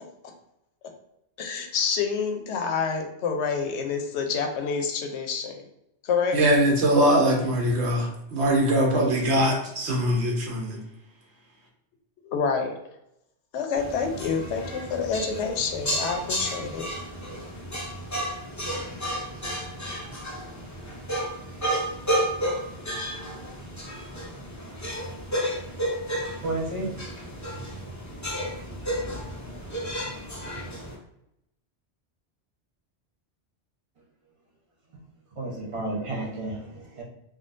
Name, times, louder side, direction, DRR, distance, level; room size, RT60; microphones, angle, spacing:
voice 1, 1.4-5.6 6.0-6.4 12.2-12.7 13.5-16.9, left 5 dB, 80° left, 4 dB, 0.8 m, -28 dB
voice 2, 6.3-10.8, right 1 dB, 70° right, -1 dB, 1.1 m, -22 dB
sound 1, 13.8-30.9, equal, 25° left, 0.4 m, -32 dB
voice 3, 26.4-27.1 35.4-37.0, right 2 dB, 35° right, -2 dB, 0.7 m, -32 dB
3.6 x 2.3 x 2.5 m, 0.82 s
omnidirectional pair, 1.2 m